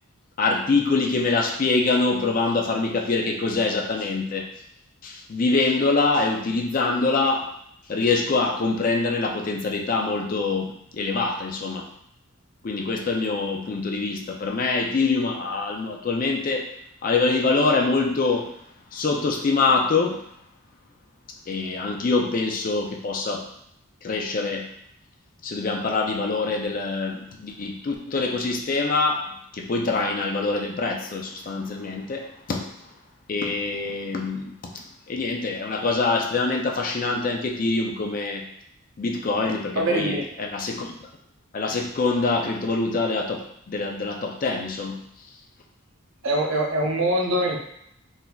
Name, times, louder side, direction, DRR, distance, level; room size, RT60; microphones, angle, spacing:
voice 1, 0.4-4.5 5.0-7.5 7.9-11.9 12.6-16.7 17.0-18.5 18.9-20.2 21.5-23.5 24.0-24.7 25.4-32.7 33.3-38.5 39.0-40.9 41.5-45.0, left 3 dB, 40° left, 2 dB, 0.4 m, -25 dB
voice 2, 39.8-40.3 46.2-47.6, right 1 dB, 60° right, 0 dB, 0.6 m, -23 dB
4.0 x 2.5 x 2.3 m, 0.73 s
head